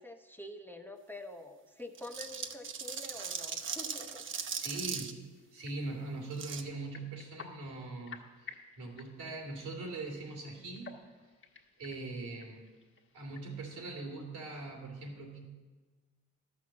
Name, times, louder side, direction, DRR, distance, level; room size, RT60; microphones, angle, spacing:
voice 1, 0.0-4.2 4.6-4.7, left 1 dB, 5° left, 5 dB, 0.8 m, -47 dB
sound 1, 1.9-5.1 6.3-6.6, right 6 dB, 40° right, 0.9 m, -38 dB
sound 2, 4.2-13.5, left 5 dB, 40° left, 1.4 m, -55 dB
voice 2, 4.5-10.9 11.8-12.7 13.1-15.4, right 2 dB, 85° right, 1 dB, 2.8 m, -41 dB
12.0 x 6.2 x 7.3 m, 1.3 s
cardioid pair, 90°, 30 cm